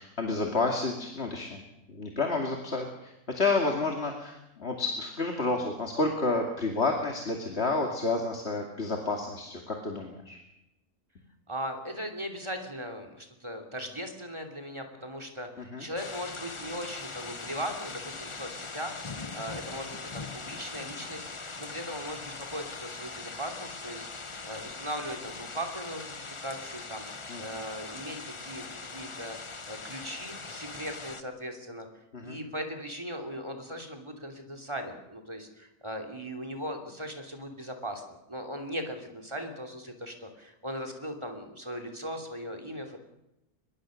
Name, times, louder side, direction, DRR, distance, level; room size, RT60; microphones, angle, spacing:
voice 1, 0.0-1.6 1.9-10.4 15.6-15.9 27.3-27.4 32.1-32.4, left 3 dB, 45° left, 2 dB, 2.6 m, -30 dB
voice 2, 11.5-24.1 24.4-27.0 27.4-29.4 29.7-31.9 32.2-43.0, equal, 20° right, 5 dB, 3.0 m, -39 dB
sound 1, 16.0-31.2, left 4 dB, 25° left, 0.8 m, -41 dB
23.5 x 21.5 x 6.4 m, 0.90 s
omnidirectional pair, 1.6 m